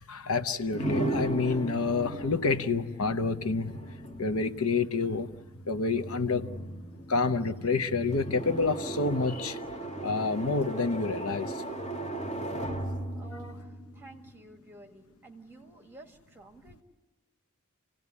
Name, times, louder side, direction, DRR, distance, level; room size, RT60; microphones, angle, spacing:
voice 1, 0.1-3.8 4.2-5.3 5.7-6.5 7.1-9.6 10.0-11.6, left 4 dB, 80° left, 11 dB, 0.8 m, -28 dB
sound 1, 0.7-14.6, right 1 dB, 30° left, 2.8 m, -37 dB
voice 2, 13.2-16.8, right 2 dB, 10° right, 3 dB, 1.9 m, -51 dB
27.5 x 17.0 x 9.7 m, 1.2 s
head